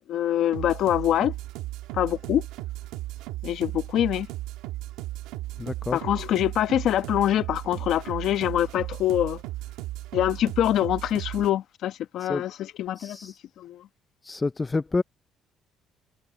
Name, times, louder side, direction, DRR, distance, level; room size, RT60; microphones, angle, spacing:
voice 1, 0.1-1.3 1.9-2.4 3.4-4.3 5.9-9.4 10.1-13.8, left 12 dB, 70° left, 1.1 m, -25 dB
sound 1, 0.5-11.5, right 16 dB, 90° right, 1.8 m, -36 dB
voice 2, 5.6-6.0 12.2-12.4 13.0-13.4 14.2-15.0, left 3 dB, 20° left, 0.4 m, -28 dB
cardioid pair, 95°, 0 cm